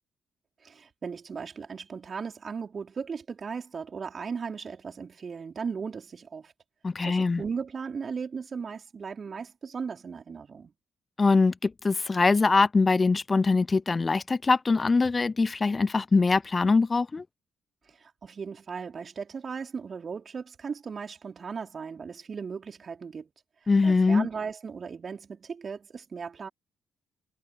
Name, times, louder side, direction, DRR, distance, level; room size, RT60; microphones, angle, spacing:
voice 1, 0.6-6.5 7.0-10.7 18.0-23.3 23.8-26.5, right 5 dB, 45° right, 3.9 m, -37 dB
voice 2, 6.8-7.4 11.2-17.2 23.7-24.3, left 4 dB, 30° left, 0.7 m, -23 dB
figure-of-eight pair, 40°, 0 cm